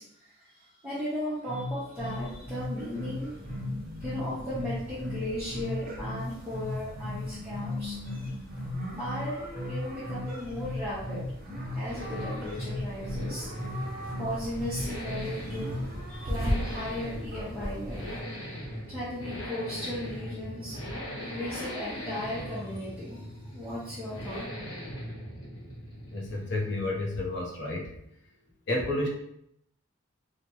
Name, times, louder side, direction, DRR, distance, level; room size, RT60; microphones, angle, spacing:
voice 1, 0.0-3.4 4.0-8.0 9.0-11.2 11.7-13.5 13.7-13.9 14.2-15.8 16.1-18.1 18.9-24.4, left 1 dB, 10° right, -13 dB, 0.8 m, -36 dB
sound 1, 1.4-15.9, left 1 dB, 25° left, 1.2 m, -36 dB
sound 2, 2.0-18.2, equal, 40° right, 0.8 m, -39 dB
sound 3, 9.5-27.3, equal, 85° left, 1.4 m, -40 dB
voice 2, 26.1-27.9 28.7-29.1, left 2 dB, 55° left, -2 dB, 0.7 m, -30 dB
3.2 x 2.2 x 3.0 m, 0.76 s
head